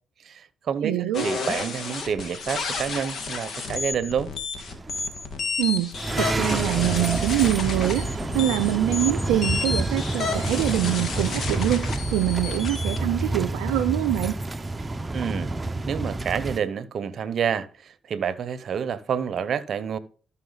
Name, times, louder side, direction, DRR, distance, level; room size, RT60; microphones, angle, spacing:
voice 1, 0.2-4.3 15.1-15.5 15.9-20.0, right 7 dB, 60° right, 0.8 m, -28 dB
voice 2, 0.8-1.3 5.6-14.4, right 14 dB, 85° right, 0.4 m, -25 dB
sound 1, 1.1-13.0, left 4 dB, 55° left, 1.9 m, -31 dB
sound 2, 4.7-5.4 5.9-16.6, right 2 dB, 25° right, 0.8 m, -28 dB
13.0 x 5.7 x 4.0 m
supercardioid pair, 55°, 0 cm